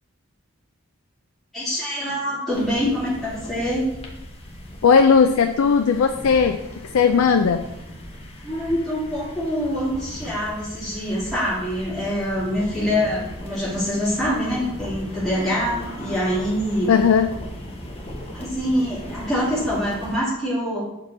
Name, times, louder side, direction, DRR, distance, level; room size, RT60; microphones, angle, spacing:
voice 1, 1.5-3.9 8.4-16.9 18.3-20.9, equal, ahead, -11 dB, 2.6 m, -25 dB
sound 1, 2.5-20.2, equal, 25° left, 0.9 m, -38 dB
voice 2, 4.8-6.6 6.9-7.6 16.9-17.3, left 6 dB, 90° left, 6 dB, 0.4 m, -17 dB
6.5 x 4.5 x 4.2 m, 0.91 s
head